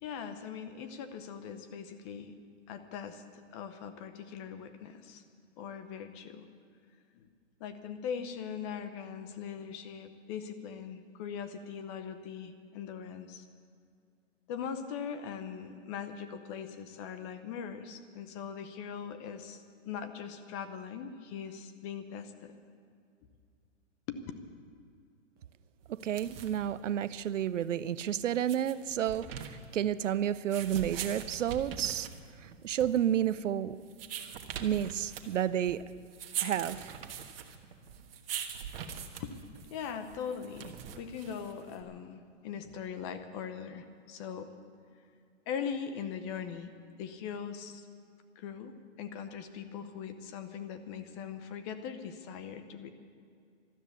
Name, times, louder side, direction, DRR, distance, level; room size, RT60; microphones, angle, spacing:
voice 1, 0.0-2.3 2.7-5.2 5.6-6.5 7.1-7.3 7.6-13.4 14.5-22.5 24.1-24.2 39.2-39.4 39.7-44.5 45.5-46.7 47.0-47.8 48.4-52.9, left 7 dB, 25° left, 0.8 m, -41 dB
sound 1, 25.9-41.8, right 8 dB, 50° right, 1.4 m, -43 dB
voice 2, 25.9-32.1 32.4-33.8 34.6-35.8 36.4-37.0, right 10 dB, 80° right, 0.7 m, -31 dB
13.0 x 12.5 x 8.3 m
hypercardioid pair, 150°, 37 cm